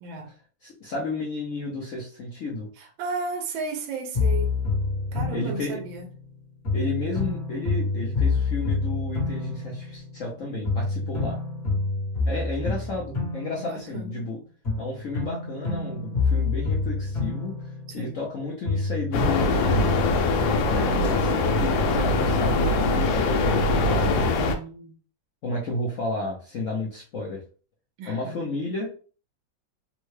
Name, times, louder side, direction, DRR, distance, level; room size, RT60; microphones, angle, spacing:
voice 1, 0.0-0.3 2.8-4.6 5.1-6.1 13.6-14.3 17.9-18.2 24.0-24.9 28.0-28.3, right 4 dB, 85° right, 1.4 m, -35 dB
voice 2, 0.6-2.7 5.3-5.8 6.7-11.4 12.3-14.4 14.8-19.8 20.7-23.5 23.8-24.3 25.4-27.4 28.1-29.0, left 2 dB, 60° left, 0.8 m, -32 dB
sound 1, 4.1-6.3 6.6-10.4 10.6-14.3 14.6-18.4 18.6-20.2, left 3 dB, 35° left, 1.3 m, -28 dB
sound 2, 19.1-24.6, left 2 dB, 85° left, 1.3 m, -22 dB
3.6 x 2.2 x 3.2 m
omnidirectional pair, 2.1 m